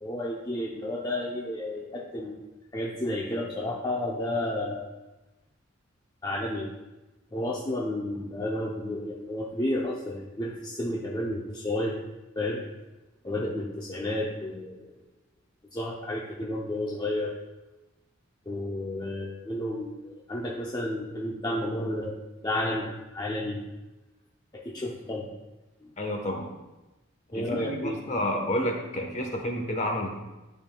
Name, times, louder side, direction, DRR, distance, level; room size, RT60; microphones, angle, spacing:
voice 1, 0.0-2.4 2.7-4.9 6.2-6.7 7.3-12.0 12.4-12.7 13.2-14.9 15.7-17.3 18.5-22.1 22.4-23.6 24.5-25.3 25.8-25.9 27.3-28.0, left 1 dB, 20° left, -3 dB, 0.6 m, -31 dB
voice 2, 26.0-26.5 27.3-30.1, left 1 dB, 35° left, 2 dB, 1.1 m, -30 dB
11.5 x 5.4 x 2.2 m, 1.1 s
head